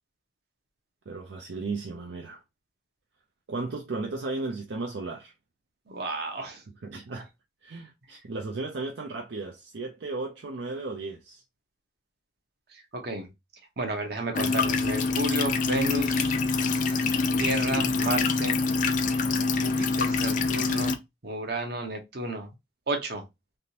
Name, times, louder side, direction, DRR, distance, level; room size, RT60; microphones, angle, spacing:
voice 1, 1.1-2.4 3.5-5.3 6.8-7.3 7.6-11.4, right 3 dB, 75° right, 0.5 m, -35 dB
voice 2, 5.9-6.6 12.7-13.3 13.8-16.4 16.7-17.0 17.4-18.6 19.4-21.0 21.2-22.5 22.9-23.2, right 2 dB, 55° right, 0.9 m, -32 dB
sound 1, 14.3-20.9, left 4 dB, 45° left, 0.4 m, -25 dB
3.5 x 2.5 x 2.8 m
head